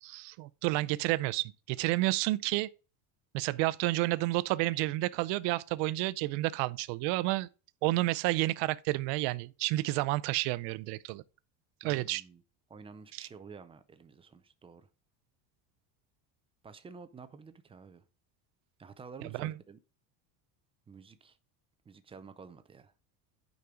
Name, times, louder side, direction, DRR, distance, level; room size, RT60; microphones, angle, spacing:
voice 1, 0.0-2.7 3.3-7.5 7.8-11.2 11.8-12.2 13.1-13.3 19.4-19.5, right 19 dB, 70° right, 0.6 m, -30 dB
voice 2, 11.8-12.4 12.7-14.9 16.6-18.0 18.8-19.8 20.9-21.4 21.9-22.9, right 5 dB, 15° right, 0.5 m, -50 dB
9.5 x 5.3 x 4.9 m
cardioid pair, 170°, 43 cm